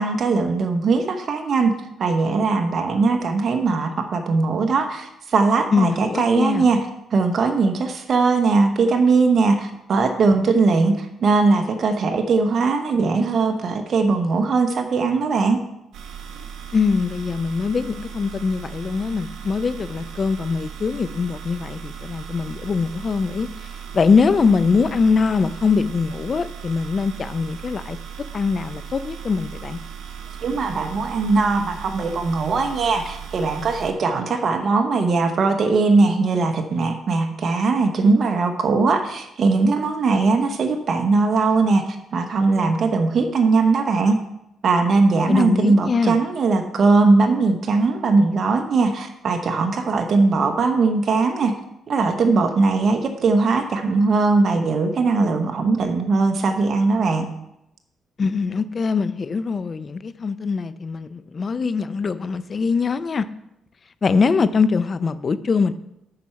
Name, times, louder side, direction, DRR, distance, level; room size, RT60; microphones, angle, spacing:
voice 1, 0.0-1.7 2.0-15.6 30.4-44.2 44.6-51.5 51.9-57.3, right 3 dB, 50° right, 5 dB, 1.0 m, -20 dB
voice 2, 5.7-6.7 16.7-23.5 23.9-28.0 28.3-29.8 45.3-46.2 58.2-63.3 64.0-65.8, left 5 dB, 40° left, 13 dB, 0.5 m, -22 dB
sound 1, 15.9-33.9, right 7 dB, 85° right, 1.2 m, -37 dB
10.5 x 4.4 x 5.8 m, 0.85 s
cardioid pair, 90°, 0 cm